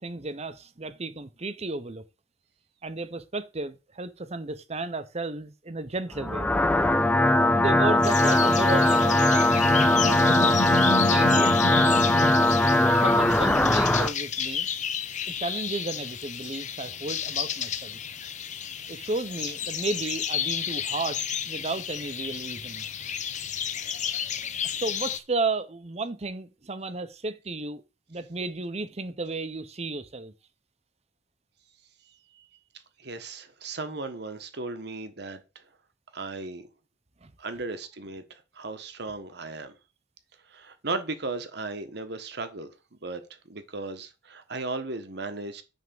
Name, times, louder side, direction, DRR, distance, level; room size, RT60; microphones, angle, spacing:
voice 1, 0.0-2.0 2.8-6.5 7.6-11.9 12.8-14.7 15.3-18.0 18.9-22.9 24.6-27.8 28.1-30.3 37.2-37.3, right 3 dB, 35° right, 0.9 m, -33 dB
sound 1, 6.1-14.1, left 1 dB, 10° left, 0.5 m, -21 dB
sound 2, 8.0-25.2, left 9 dB, 40° left, 0.7 m, -32 dB
Animal, 9.3-13.3, left 1 dB, 75° left, 0.9 m, -32 dB
voice 2, 33.0-35.4 36.1-36.6 37.4-39.7 40.5-42.7 43.0-45.6, right 3 dB, 65° right, 1.3 m, -36 dB
9.5 x 3.6 x 7.0 m
head